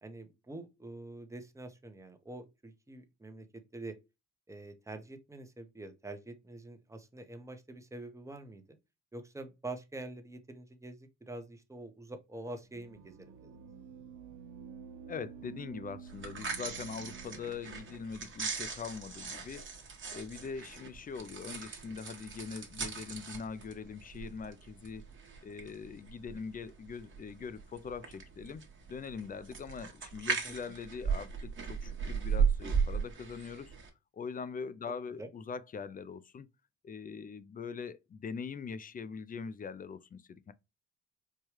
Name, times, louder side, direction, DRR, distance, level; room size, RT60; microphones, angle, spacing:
voice 1, 0.0-4.0 4.5-8.8 9.1-13.6 30.4-30.7 35.2-35.3, right 2 dB, 10° right, 0.7 m, -46 dB
sound 1, 12.7-19.9, right 6 dB, 85° right, 0.5 m, -51 dB
voice 2, 15.1-19.7 20.1-25.1 25.4-28.6 28.9-33.7 34.1-36.5 36.8-40.5, left 5 dB, 30° left, 0.4 m, -42 dB
sound 2, 16.1-33.9, right 6 dB, 40° right, 1.1 m, -37 dB
4.6 x 2.3 x 3.0 m
cardioid pair, 90°, 30 cm